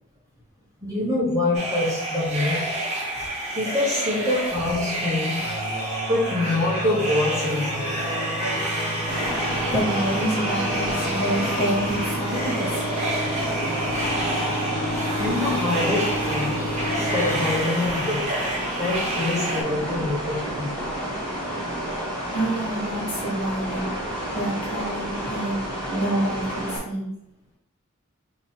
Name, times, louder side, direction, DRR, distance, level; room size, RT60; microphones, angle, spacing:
voice 1, 0.8-2.7 3.5-8.2 15.2-16.6 16.9-18.3 18.8-20.8, left 2 dB, 15° right, -5 dB, 1.1 m, -26 dB
sound 1, 1.5-19.6, right 1 dB, 35° right, 1.5 m, -29 dB
sound 2, 5.4-18.3, equal, 50° left, 1.4 m, -31 dB
sound 3, 9.1-26.8, right 1 dB, 5° left, 1.8 m, -31 dB
voice 2, 9.7-12.9 22.2-23.9 24.3-27.1, right 1 dB, 30° left, -5 dB, 1.4 m, -28 dB
4.0 x 3.0 x 4.5 m, 0.75 s
head